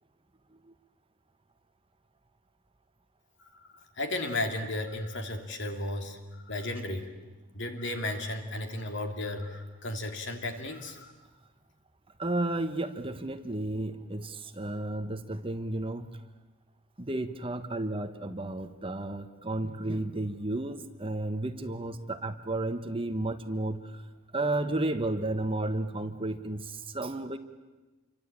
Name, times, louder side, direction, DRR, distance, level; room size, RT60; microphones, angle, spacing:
voice 1, 3.5-7.1 7.5-11.1, left 1 dB, 55° left, 5 dB, 2.9 m, -34 dB
voice 2, 12.2-16.2 17.0-24.0 24.3-27.4, right 2 dB, 25° right, 9 dB, 1.3 m, -32 dB
28.0 x 24.5 x 8.8 m, 1.2 s
head